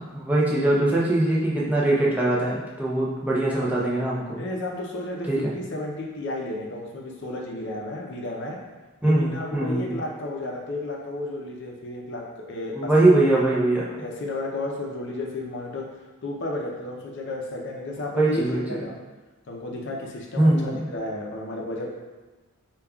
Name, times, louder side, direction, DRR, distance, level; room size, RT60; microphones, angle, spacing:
voice 1, 0.1-4.4 5.3-5.5 9.0-9.9 12.7-13.8 18.1-18.8 20.4-20.8, right 2 dB, 5° right, -6 dB, 0.5 m, -22 dB
voice 2, 4.4-8.6 9.0-12.9 13.3-13.4 14.0-15.9 16.2-19.0 19.5-21.9, left 2 dB, 55° left, 0 dB, 0.5 m, -33 dB
5.1 x 2.3 x 2.3 m, 1.2 s
head